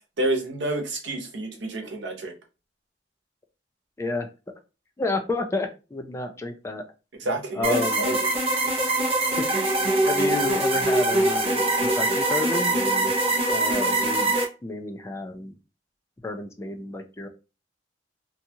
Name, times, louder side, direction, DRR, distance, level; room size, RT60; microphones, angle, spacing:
voice 1, 0.2-2.3 7.2-8.2, right 2 dB, 85° right, 1 dB, 0.8 m, -28 dB
voice 2, 4.0-4.3 5.0-6.8 7.5-8.1 9.8-13.1 13.5-15.5 16.2-17.3, left 3 dB, 15° left, 5 dB, 0.3 m, -31 dB
sound 1, 7.6-14.4, right 2 dB, 35° right, 0.6 m, -23 dB
2.7 x 2.3 x 2.7 m, 0.31 s
head